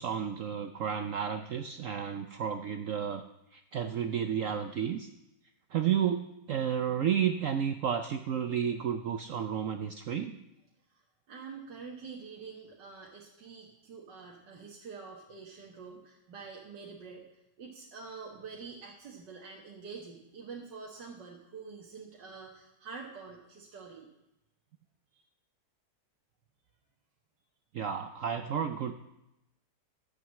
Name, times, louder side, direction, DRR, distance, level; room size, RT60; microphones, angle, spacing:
voice 1, 0.0-3.2 3.5-5.1 5.7-10.4 27.7-29.0, right 8 dB, 65° right, 8 dB, 0.9 m, -32 dB
voice 2, 10.9-17.2 17.6-24.1 25.1-25.2, right 5 dB, 80° right, -2 dB, 2.0 m, -46 dB
12.5 x 8.0 x 7.4 m, 0.88 s
omnidirectional pair, 1.9 m